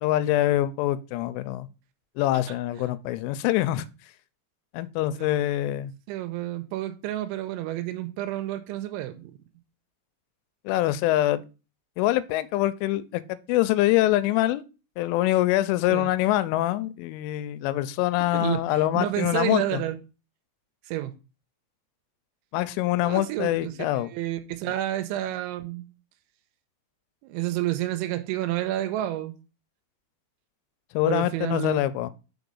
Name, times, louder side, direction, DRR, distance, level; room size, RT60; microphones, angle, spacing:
voice 1, 0.0-1.7 2.2-3.9 4.7-5.9 10.7-11.4 12.0-14.6 15.0-19.8 22.5-24.1 30.9-32.1, left 15 dB, 90° left, 3.1 m, -24 dB
voice 2, 5.1-5.4 6.1-9.3 15.9-16.1 18.3-18.6 18.9-20.0 20.9-21.1 23.0-25.9 27.2-29.3 31.0-31.8, right 14 dB, 85° right, 3.1 m, -30 dB
6.3 x 4.8 x 5.3 m
omnidirectional pair, 5.5 m